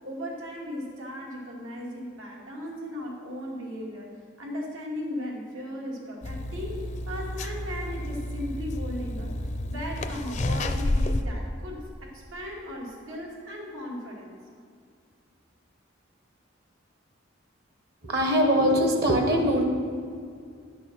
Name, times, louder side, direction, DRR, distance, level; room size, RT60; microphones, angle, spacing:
voice 1, 0.0-4.1 4.4-6.8 7.1-14.3, left 1 dB, 90° right, -2 dB, 2.5 m, -37 dB
sound 1, 6.2-11.2, left 1 dB, 35° left, 0.4 m, -30 dB
voice 2, 18.0-19.6, equal, 50° right, 3 dB, 1.1 m, -22 dB
11.0 x 6.1 x 6.1 m, 2.3 s
head